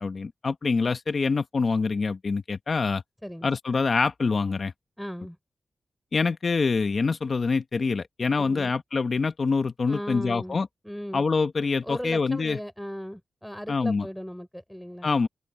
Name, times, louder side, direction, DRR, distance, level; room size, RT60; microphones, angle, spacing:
voice 1, 0.0-3.0 3.4-4.7 6.1-10.7 11.1-12.6 13.7-14.1 15.0-15.3, left 4 dB, 50° left, 1.0 m, -25 dB
voice 2, 5.0-5.4 8.4-8.8 9.9-11.2 11.8-15.3, equal, ahead, 6.0 m, -37 dB
open air
wide cardioid pair, 105°, 0 cm